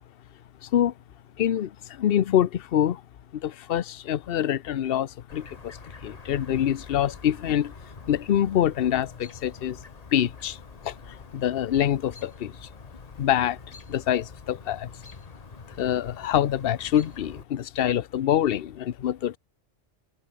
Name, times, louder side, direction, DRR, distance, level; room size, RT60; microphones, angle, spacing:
voice 1, 0.6-0.9 1.4-3.0 3.3-7.7 8.1-9.8 10.1-12.7 13.2-13.6 13.9-14.9 15.8-19.4, left 10 dB, 55° left, 0.9 m, -25 dB
Chirp tweet, 5.3-17.4, left 4 dB, 30° left, 1.5 m, -46 dB
omnidirectional pair, 1.3 m